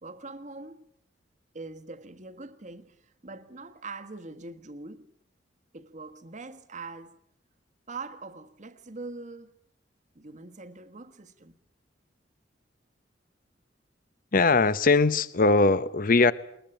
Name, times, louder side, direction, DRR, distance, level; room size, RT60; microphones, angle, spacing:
voice 1, 0.0-0.9 1.5-5.1 5.7-7.2 7.9-9.5 10.1-11.5, right 3 dB, 40° right, 1.4 m, -43 dB
voice 2, 14.3-16.3, left 3 dB, 50° left, 0.9 m, -21 dB
21.0 x 20.5 x 9.0 m
head